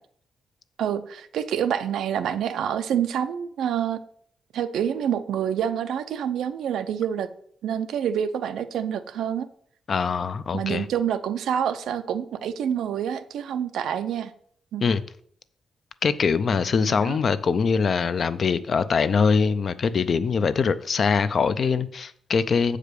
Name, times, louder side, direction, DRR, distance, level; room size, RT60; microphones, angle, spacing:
voice 1, 0.8-4.0 4.5-7.3 7.6-9.5 10.5-14.3 14.7-14.9 16.8-17.2, right 9 dB, 80° right, 0.5 m, -27 dB
voice 2, 9.9-10.8 14.8-15.0 16.0-22.8, left 5 dB, 35° left, 0.4 m, -23 dB
7.5 x 4.9 x 6.7 m
wide cardioid pair, 180°, 0 cm